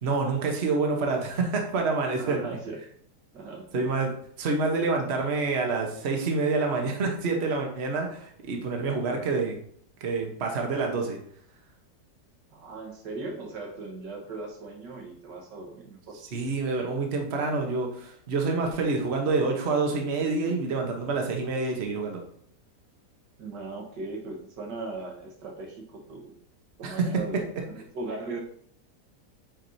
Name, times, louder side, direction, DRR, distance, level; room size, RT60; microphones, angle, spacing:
voice 1, 0.0-2.5 3.7-4.1 4.4-9.6 10.0-11.2 16.3-22.2 26.8-27.2, right 3 dB, 45° right, 2 dB, 1.2 m, -27 dB
voice 2, 2.2-2.8 3.3-3.9 12.5-16.2 23.4-26.3 26.8-28.4, right 3 dB, 85° right, 0 dB, 1.9 m, -38 dB
8.8 x 4.7 x 2.7 m, 0.63 s
omnidirectional pair, 1.8 m